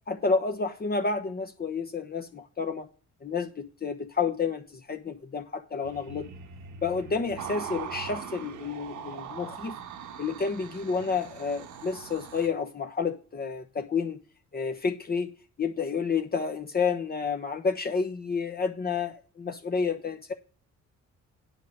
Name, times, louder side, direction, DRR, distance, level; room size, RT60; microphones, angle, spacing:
voice 1, 0.1-2.9 3.2-6.2 6.8-9.8 10.2-14.2 14.5-15.3 15.6-20.3, left 5 dB, 30° left, 1.1 m, -30 dB
sound 1, 5.8-12.5, right 7 dB, 75° right, 1.4 m, -41 dB
9.5 x 5.3 x 6.5 m
cardioid pair, 90°, 30 cm